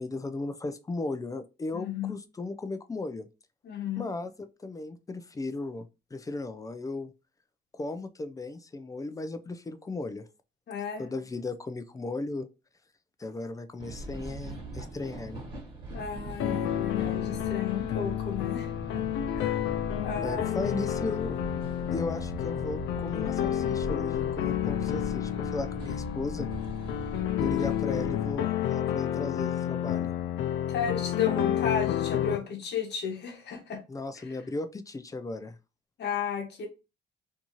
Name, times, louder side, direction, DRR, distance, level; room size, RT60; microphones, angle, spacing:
voice 1, 0.0-3.3 4.0-5.9 6.1-7.1 7.7-10.3 11.0-12.5 13.2-15.4 20.2-21.4 21.9-26.5 27.4-30.1 33.9-35.6, left 2 dB, 15° left, 0.4 m, -36 dB
voice 2, 1.7-2.1 3.6-4.1 10.7-11.1 15.9-19.0 19.3-19.6 20.0-20.8 30.7-33.8 34.2-34.4 36.0-36.7, left 7 dB, 60° left, 1.0 m, -33 dB
sound 1, 13.8-28.4, right 2 dB, 25° right, 1.5 m, -41 dB
sound 2, 16.4-32.4, left 11 dB, 80° left, 0.4 m, -30 dB
2.6 x 2.3 x 2.9 m
cardioid pair, 90°, 20 cm